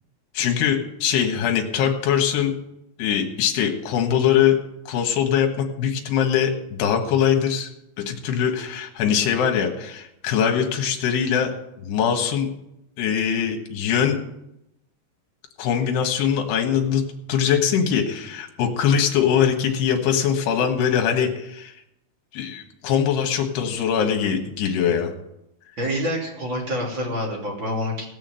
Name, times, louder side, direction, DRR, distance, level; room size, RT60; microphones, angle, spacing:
voice 1, 0.3-2.5 3.0-4.6 4.9-7.7 8.0-11.5 11.8-12.5 13.0-14.2 15.6-17.0 17.3-21.7 22.3-25.1, left 8 dB, 65° left, 3 dB, 3.2 m, -22 dB
voice 2, 25.8-28.1, equal, 30° right, -1 dB, 2.7 m, -27 dB
18.0 x 6.4 x 7.7 m, 0.83 s
omnidirectional pair, 5.7 m